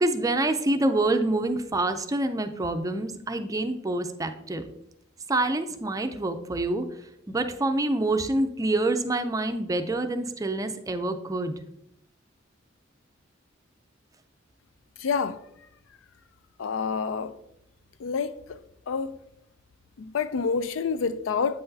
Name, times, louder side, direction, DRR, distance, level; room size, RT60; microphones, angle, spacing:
voice 1, 0.0-4.6 5.3-6.9 7.3-11.6, right 2 dB, 20° right, 0.4 m, -26 dB
voice 2, 15.0-15.4 16.6-17.3 18.0-18.6 18.9-19.1 20.0-21.6, left 5 dB, 85° left, 0.4 m, -28 dB
8.5 x 5.8 x 2.7 m
head